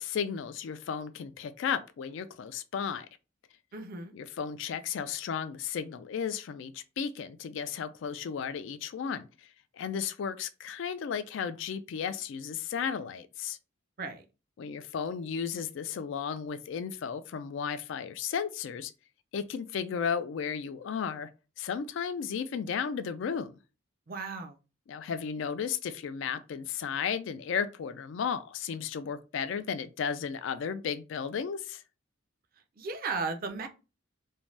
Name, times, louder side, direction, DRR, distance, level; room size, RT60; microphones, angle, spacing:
voice 1, 0.0-3.1 4.1-9.3 9.7-13.6 14.6-18.9 19.3-21.3 21.6-23.6 24.9-31.8, left 7 dB, 65° left, 0.3 m, -34 dB
voice 2, 3.7-4.1 14.0-14.2 24.1-24.6 32.8-33.7, right 4 dB, 45° right, 0.4 m, -35 dB
2.6 x 2.2 x 3.1 m
head